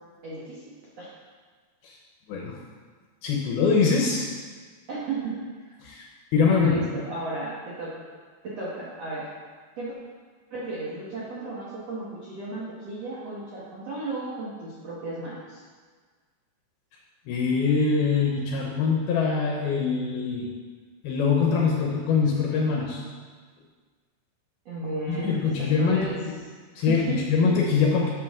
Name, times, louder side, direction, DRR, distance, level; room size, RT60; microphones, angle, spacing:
voice 1, 0.2-1.1 4.9-5.3 6.4-8.0 8.4-9.3 9.8-9.9 10.5-15.6 24.6-26.1 26.9-27.2, right 2 dB, 85° right, -6 dB, 1.4 m, -34 dB
voice 2, 3.2-4.3 5.8-6.1 6.3-6.7 17.3-20.5 21.0-23.0 25.1-26.1 26.8-28.1, left 5 dB, 75° left, 0 dB, 2.4 m, -23 dB
11.0 x 7.6 x 3.6 m, 1.5 s
omnidirectional pair, 5.2 m